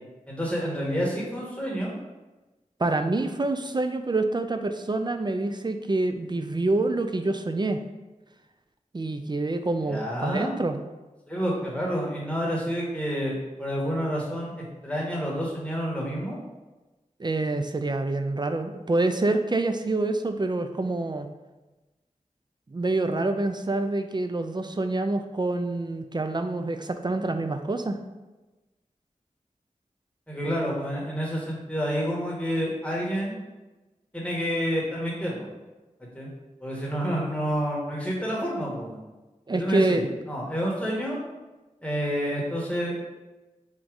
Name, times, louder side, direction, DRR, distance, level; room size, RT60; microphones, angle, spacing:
voice 1, 0.3-1.9 9.8-10.6 11.3-16.3 30.3-33.4 34.1-35.5 36.1-36.3 36.6-39.0 39.5-41.2 41.8-42.9, equal, 10° left, -4 dB, 1.3 m, -29 dB
voice 2, 2.8-7.8 8.9-10.8 17.2-21.3 22.7-28.0 39.5-40.1, right 2 dB, 35° right, 8 dB, 0.4 m, -27 dB
3.7 x 2.6 x 4.6 m, 1.1 s
wide cardioid pair, 40°, 14 cm